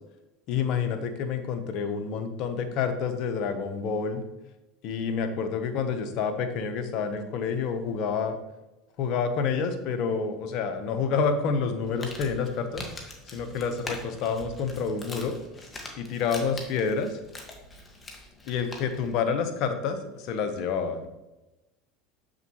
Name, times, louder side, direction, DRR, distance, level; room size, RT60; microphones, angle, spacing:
voice 1, 0.5-4.2 4.8-8.4 9.0-12.8 13.3-15.4 15.9-17.2 18.5-21.1, left 5 dB, 60° left, 8 dB, 1.0 m, -28 dB
Crumpling crinkling, 11.7-19.1, left 2 dB, 20° left, 1.7 m, -43 dB
7.3 x 6.7 x 3.1 m, 1.0 s
hypercardioid pair, 95°, 0 cm